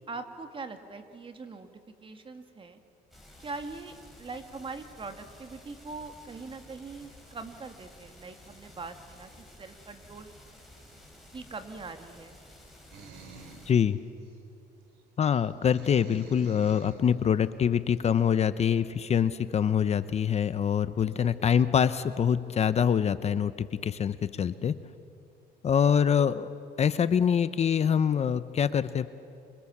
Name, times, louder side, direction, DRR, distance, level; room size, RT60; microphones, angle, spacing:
voice 1, 0.1-2.8 3.4-10.3 11.3-12.4 21.0-21.3, right 4 dB, 30° right, 7 dB, 2.4 m, -42 dB
sound 1, 3.1-13.7, left 1 dB, ahead, 7.2 m, -53 dB
sound 2, 12.9-13.7 14.2-14.3 15.3-17.0, right 4 dB, 80° right, 3.7 m, -48 dB
voice 2, 13.7-14.0 15.2-24.7 25.6-26.5 26.8-29.1, left 8 dB, 40° left, 14 dB, 0.9 m, -25 dB
29.0 x 27.0 x 7.4 m, 2.6 s
cardioid pair, 110°, 17 cm